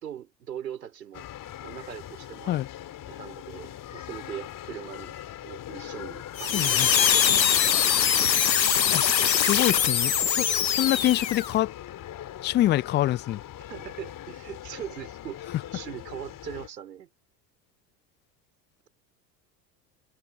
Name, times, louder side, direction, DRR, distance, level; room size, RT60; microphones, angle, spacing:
voice 1, 0.0-1.2 1.6-2.6 3.1-7.2 13.7-17.1, right 10 dB, 75° right, 4.6 m, -40 dB
sound 1, 1.1-16.7, left 12 dB, 40° left, 3.5 m, -41 dB
sound 2, 6.4-11.6, left 8 dB, 90° left, 0.8 m, -22 dB
voice 2, 6.5-6.9 8.9-11.7 12.4-13.4, left 14 dB, 25° left, 0.4 m, -26 dB
open air
figure-of-eight pair, 70°, 49 cm